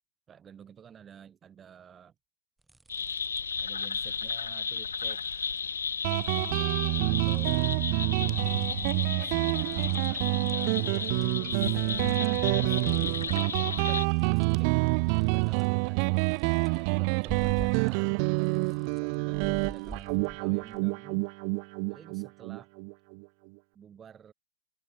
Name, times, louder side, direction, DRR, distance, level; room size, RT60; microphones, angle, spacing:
voice 1, 0.3-2.1 3.6-5.2 6.3-7.8 9.0-11.8 12.6-14.7 15.3-16.2 16.6-21.3 21.9-22.7 23.7-24.3, right 8 dB, 25° right, 5.0 m, -51 dB
sound 1, 2.6-3.6 3.8-4.4 5.0-5.6 5.9-7.9 8.2-18.1 18.4-20.8, right 2 dB, 10° right, 3.5 m, -49 dB
sound 2, 2.9-14.1, left 6 dB, 90° left, 0.6 m, -34 dB
Guitar, 6.0-23.2, right 40 dB or more, 50° right, 0.7 m, -27 dB
hypercardioid pair, 110°, 0 cm